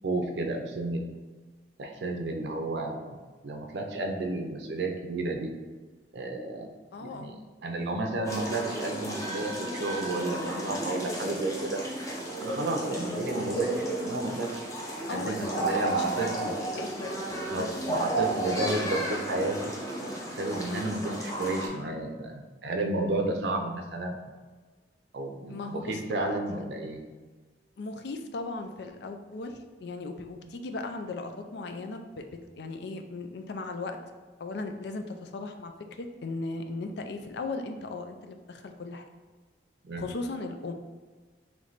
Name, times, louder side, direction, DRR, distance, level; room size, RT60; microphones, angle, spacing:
voice 1, 0.0-1.0 1.8-3.2 3.4-5.5 6.1-6.7 7.0-7.4 7.6-11.8 12.4-14.7 15.1-16.5 17.5-19.7 20.3-24.2 25.1-27.0 30.4-30.5 39.8-40.1, right 2 dB, 70° right, 3 dB, 0.5 m, -32 dB
voice 2, 6.9-7.4 7.8-7.9 15.1-18.1 25.5-26.6 27.8-32.3 32.6-34.0 34.4-35.7 36.0-39.1 40.0-40.7, left 3 dB, 65° left, 6 dB, 0.4 m, -37 dB
sound 1, 8.2-21.7, right 1 dB, 20° left, 0.7 m, -33 dB
3.2 x 3.2 x 3.9 m, 1.3 s
head